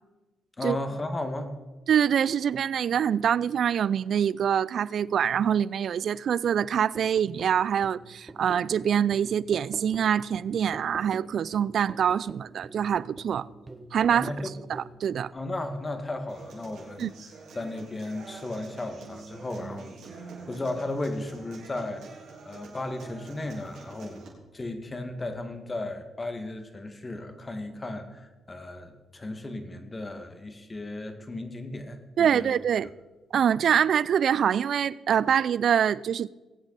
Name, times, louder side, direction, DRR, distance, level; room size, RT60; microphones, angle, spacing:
voice 1, 0.6-1.5 14.1-14.5 15.3-17.2 17.5-22.0 22.4-32.5, left 2 dB, 25° left, 1.9 m, -35 dB
voice 2, 1.9-13.5 13.9-14.3 14.7-15.3 17.0-17.1 32.2-32.9 33.3-36.3, right 8 dB, 65° right, 0.4 m, -25 dB
sound 1, 6.9-16.4 17.0-17.1, right 2 dB, 25° right, 1.4 m, -46 dB
Human voice / Acoustic guitar, 16.3-24.3, right 4 dB, 80° right, 3.6 m, -46 dB
20.5 x 8.2 x 4.1 m
cardioid pair, 80°, 0 cm